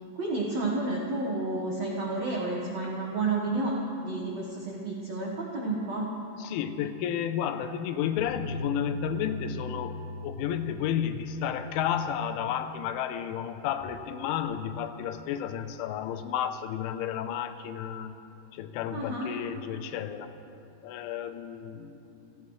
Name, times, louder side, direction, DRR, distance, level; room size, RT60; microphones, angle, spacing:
voice 1, 0.2-3.7 4.0-6.1 18.9-19.3, right 2 dB, 70° right, -2 dB, 1.6 m, -31 dB
voice 2, 6.4-10.0 10.2-18.1 18.5-20.3 20.8-22.3, left 9 dB, 90° left, 9 dB, 3.2 m, -32 dB
Bass guitar, 8.2-14.4, left 2 dB, 70° left, 4.5 m, -41 dB
28.5 x 15.5 x 3.2 m, 2.6 s
omnidirectional pair, 5.4 m